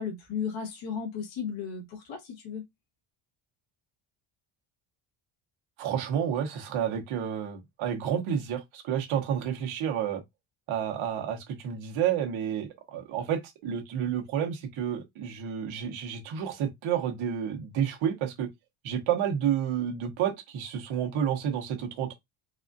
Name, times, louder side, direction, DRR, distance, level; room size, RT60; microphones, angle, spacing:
voice 1, 0.0-2.6, left 6 dB, 70° left, 1.5 m, -35 dB
voice 2, 5.8-10.2 10.7-11.4 11.6-18.5 18.8-22.1, right 9 dB, 75° right, 1.2 m, -30 dB
4.1 x 2.4 x 2.6 m
cardioid pair, 145°, 48 cm